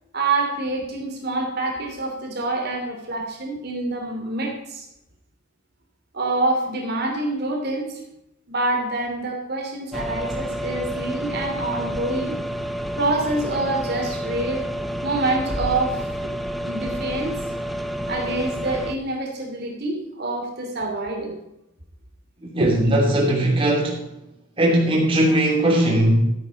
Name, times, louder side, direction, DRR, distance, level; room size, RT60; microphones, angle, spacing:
voice 1, 0.1-4.9 6.1-8.0 8.5-12.4 13.0-14.6 15.0-16.3 16.6-17.3 18.1-21.4 22.6-22.7, right 2 dB, 50° right, 1 dB, 2.9 m, -26 dB
sound 1, 9.9-19.0, equal, ahead, 0.8 m, -29 dB
voice 2, 22.5-24.0 24.6-26.2, right 1 dB, 25° right, -1 dB, 3.0 m, -19 dB
14.0 x 9.5 x 5.2 m, 0.85 s
head